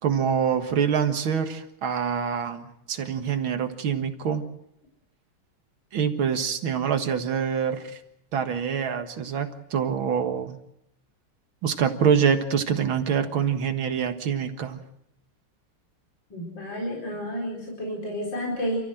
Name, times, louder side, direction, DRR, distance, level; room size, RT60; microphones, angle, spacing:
voice 1, 0.0-4.5 5.9-8.0 8.3-10.6 11.6-14.8, right 7 dB, 70° right, 7 dB, 2.4 m, -25 dB
voice 2, 16.3-18.8, equal, 60° left, -2 dB, 5.4 m, -31 dB
28.5 x 14.5 x 7.8 m, 0.81 s
omnidirectional pair, 2.3 m